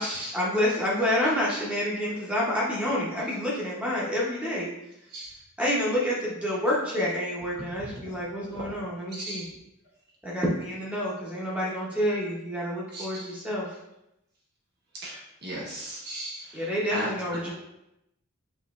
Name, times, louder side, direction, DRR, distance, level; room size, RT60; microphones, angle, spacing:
voice 1, 0.0-4.7 5.6-9.5 10.2-13.7 16.5-17.5, equal, 5° right, -6 dB, 0.8 m, -28 dB
voice 2, 9.1-9.5 12.9-13.3 15.0-17.1 17.4-17.5, right 1 dB, 50° right, -5 dB, 1.3 m, -37 dB
5.6 x 3.0 x 2.4 m, 0.85 s
head